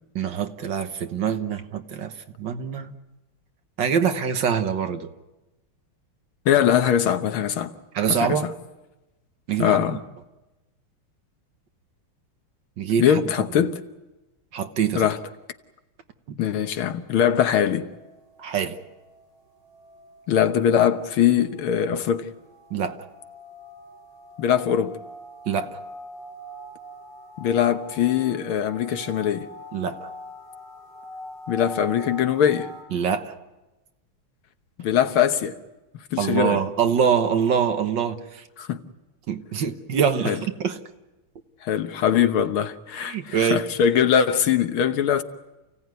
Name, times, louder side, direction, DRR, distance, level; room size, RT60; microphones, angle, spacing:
voice 1, 0.2-2.1 2.4-2.9 3.8-5.1 7.9-8.5 9.5-9.8 12.8-13.2 14.5-15.1 16.3-16.4 18.4-18.8 22.7-23.0 25.5-25.8 29.7-30.1 32.9-33.3 36.2-38.4 39.3-40.8 43.0-43.6, right 7 dB, 60° right, 1.8 m, -24 dB
voice 2, 6.5-7.7 8.1-8.5 9.6-10.0 13.0-13.8 15.0-15.2 16.4-17.9 20.3-22.3 24.4-25.0 27.4-29.5 31.5-32.7 34.8-35.6 36.1-36.6 38.6-38.8 40.3-40.4 41.6-45.2, left 9 dB, 80° left, 2.0 m, -22 dB
sound 1, 16.6-32.8, equal, 10° right, 6.5 m, -43 dB
29.0 x 17.0 x 9.5 m
omnidirectional pair, 2.3 m